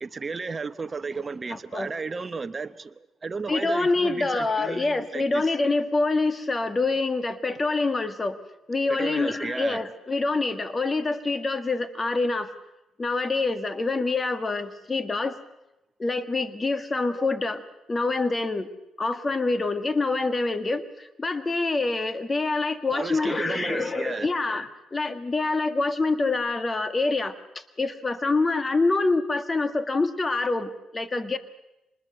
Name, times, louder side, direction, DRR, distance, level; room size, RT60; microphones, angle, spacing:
voice 1, 0.0-5.5 8.9-9.8 22.9-24.3, right 4 dB, 30° right, 1.0 m, -34 dB
voice 2, 1.5-1.9 3.5-8.4 8.7-12.5 13.0-15.4 16.0-17.6 17.9-18.7 19.0-27.3 27.8-31.4, left 3 dB, 25° left, 1.7 m, -26 dB
25.5 x 20.5 x 6.6 m
cardioid pair, 90°, 0 cm